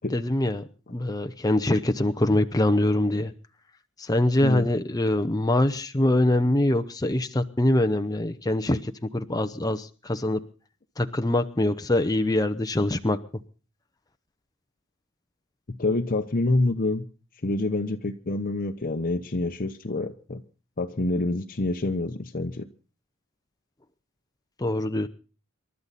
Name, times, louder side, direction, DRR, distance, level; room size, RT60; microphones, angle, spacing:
voice 1, 0.1-3.3 4.0-10.4 11.0-13.2 24.6-25.1, left 1 dB, 20° left, 7 dB, 0.8 m, -24 dB
voice 2, 15.8-17.0 17.4-20.4 20.8-22.7, left 2 dB, 45° left, 5 dB, 1.0 m, -27 dB
28.0 x 12.5 x 4.1 m, 0.37 s
head